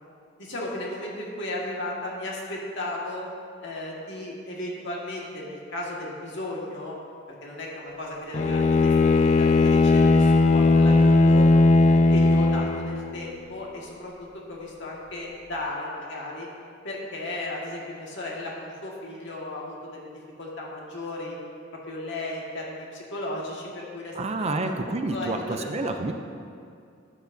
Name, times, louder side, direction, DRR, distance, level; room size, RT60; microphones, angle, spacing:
voice 1, 0.4-3.3 3.6-7.0 7.4-11.5 11.8-16.5 16.8-20.1 20.4-21.4 21.8-24.7 25.1-26.1, left 1 dB, 65° left, -3 dB, 1.8 m, -35 dB
Bowed string instrument, 8.3-13.2, left 2 dB, 35° left, 0.3 m, -18 dB
voice 2, 24.1-26.1, right 2 dB, 35° right, 6 dB, 0.5 m, -29 dB
12.5 x 8.7 x 2.7 m, 2.3 s
head